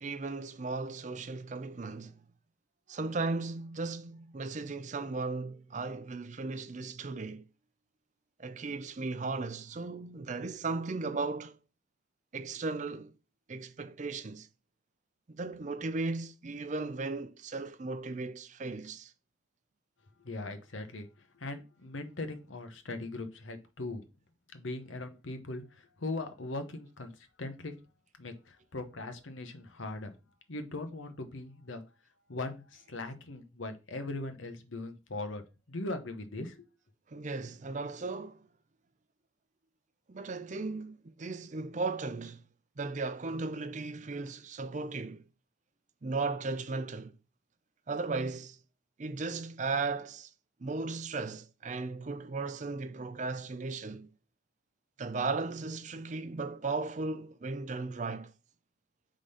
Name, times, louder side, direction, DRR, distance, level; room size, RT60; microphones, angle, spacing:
voice 1, 0.0-2.2 2.9-7.4 8.4-11.6 12.3-13.1 13.5-14.5 15.3-19.1 37.1-38.4 40.1-42.4 42.8-45.2 46.0-47.1 47.9-48.6 49.0-50.3 50.6-54.1 55.0-58.3, right 3 dB, 40° right, 0.5 m, -36 dB
voice 2, 20.2-21.1 21.4-24.0 24.5-27.7 28.2-30.1 30.5-31.8 32.3-35.4 35.7-36.7, left 2 dB, 85° left, 1.1 m, -40 dB
5.0 x 3.8 x 5.5 m
head